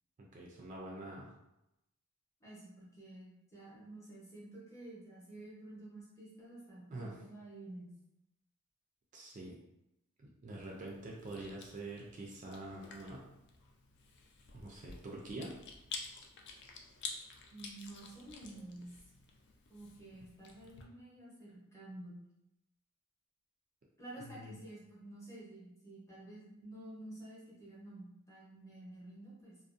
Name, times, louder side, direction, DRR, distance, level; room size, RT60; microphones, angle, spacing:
voice 1, 0.3-1.3 6.9-7.1 9.1-9.6 10.2-13.2 14.5-15.5 24.2-24.5, right 2 dB, 35° right, -2 dB, 0.3 m, -45 dB
voice 2, 2.4-7.9 17.5-18.9 19.7-22.2 24.0-29.6, right 1 dB, 15° left, -7 dB, 0.7 m, -51 dB
Chewing mastication, 10.6-20.8, left 4 dB, 50° left, 0.3 m, -50 dB
2.5 x 2.0 x 2.4 m, 0.89 s
head